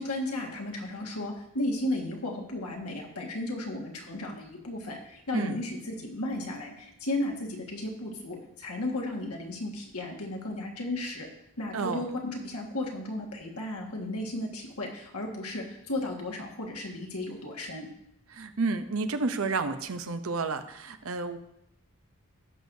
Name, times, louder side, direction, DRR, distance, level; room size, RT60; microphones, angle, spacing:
voice 1, 0.0-11.3 11.6-17.9, left 1 dB, 90° left, 0 dB, 1.8 m, -34 dB
voice 2, 11.7-12.1 18.3-21.4, right 3 dB, 70° right, 9 dB, 0.7 m, -30 dB
16.5 x 6.3 x 2.7 m, 0.81 s
head